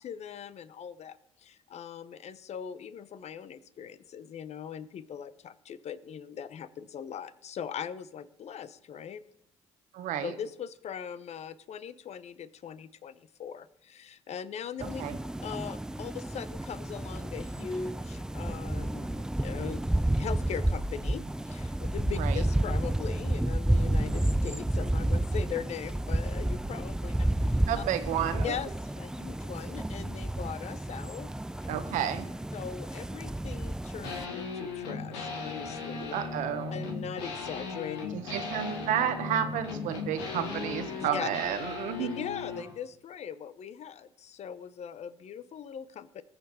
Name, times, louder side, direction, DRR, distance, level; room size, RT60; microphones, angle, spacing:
voice 1, 0.0-9.2 10.2-15.0 15.4-19.8 20.2-27.8 28.4-31.3 32.5-36.1 36.7-38.2 41.0-41.3 42.0-46.2, left 8 dB, 55° left, 15 dB, 0.8 m, -40 dB
voice 2, 9.9-10.3 15.0-15.2 22.1-22.4 27.7-28.5 31.7-32.3 36.1-36.8 38.1-42.3, right 9 dB, 70° right, 9 dB, 1.2 m, -31 dB
sound 1, 14.8-34.2, right 1 dB, 5° right, 0.4 m, -31 dB
sound 2, 34.0-42.7, left 4 dB, 90° left, 1.9 m, -37 dB
20.5 x 7.0 x 4.2 m, 0.78 s
hypercardioid pair, 55°, 13 cm